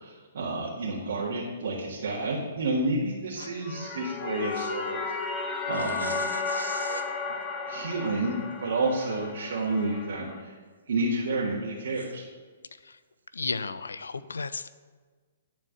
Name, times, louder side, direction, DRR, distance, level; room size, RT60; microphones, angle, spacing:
voice 1, 0.0-5.0 5.7-6.2 7.7-8.3 8.6-10.5 10.9-12.2, right 2 dB, 70° right, -5 dB, 1.8 m, -30 dB
sound 1, 3.5-10.4, left 4 dB, 20° left, 1.0 m, -34 dB
sound 2, 4.5-4.7 5.7-7.1 9.0-9.1 9.6-9.7 11.9-12.1, right 4 dB, 85° right, 0.7 m, -41 dB
voice 2, 13.3-14.7, left 4 dB, 80° left, 14 dB, 0.5 m, -33 dB
10.5 x 4.6 x 6.3 m, 1.5 s
hypercardioid pair, 125°, 0 cm